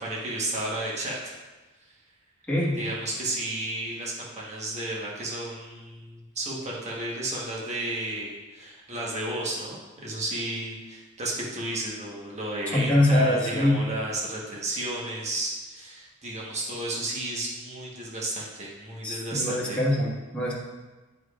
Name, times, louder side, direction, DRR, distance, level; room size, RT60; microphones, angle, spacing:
voice 1, 0.0-1.4 2.8-19.8, right 1 dB, 30° right, -4 dB, 1.2 m, -33 dB
voice 2, 2.5-2.8 12.7-13.8 19.0-20.5, left 1 dB, 5° left, -7 dB, 1.5 m, -23 dB
9.1 x 4.9 x 2.4 m, 1.2 s
head